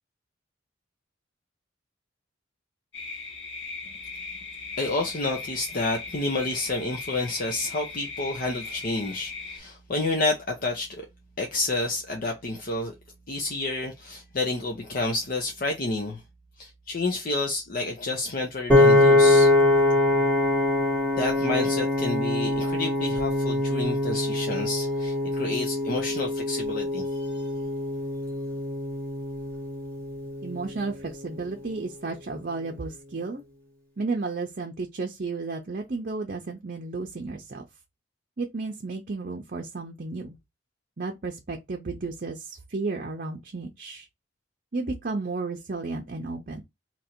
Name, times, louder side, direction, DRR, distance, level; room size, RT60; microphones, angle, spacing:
sound 1, 2.9-9.6, left 4 dB, 65° left, 1.3 m, -38 dB
voice 1, 4.8-11.1 11.4-12.9 13.3-16.2 16.6-19.5 21.1-27.5, left 2 dB, 50° left, 0.7 m, -29 dB
Piano, 18.7-30.9, left 2 dB, 10° left, 1.1 m, -23 dB
voice 2, 30.4-33.4 34.0-37.6 38.4-40.4 41.0-44.1 44.7-46.6, right 3 dB, 45° right, 0.6 m, -33 dB
2.9 x 2.6 x 4.3 m
head